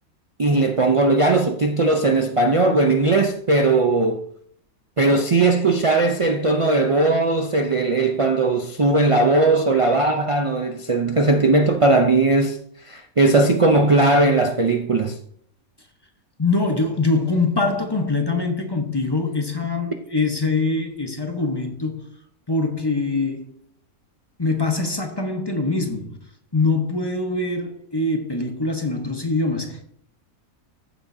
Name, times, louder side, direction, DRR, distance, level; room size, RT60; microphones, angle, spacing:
voice 1, 0.4-4.2 5.0-12.6 12.8-15.2, right 2 dB, 55° right, 0.3 m, -18 dB
voice 2, 16.4-22.0 22.5-23.5 24.4-26.2 26.5-29.9, left 3 dB, 20° left, 0.9 m, -23 dB
14.5 x 7.2 x 2.7 m
omnidirectional pair, 1.6 m